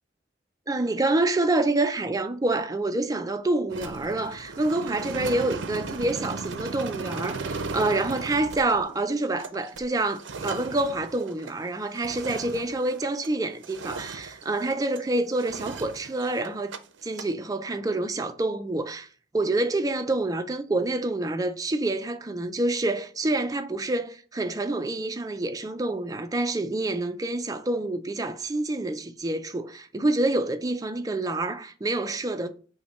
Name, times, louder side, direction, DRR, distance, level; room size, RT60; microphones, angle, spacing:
voice 1, 0.7-16.7 17.0-19.1 19.3-32.5, right 2 dB, 20° right, 0.4 m, -27 dB
sound 1, 3.7-13.4 13.6-15.0 15.4-16.8 17.0-17.3, right 4 dB, 85° right, 0.5 m, -37 dB
5.7 x 2.2 x 4.0 m
head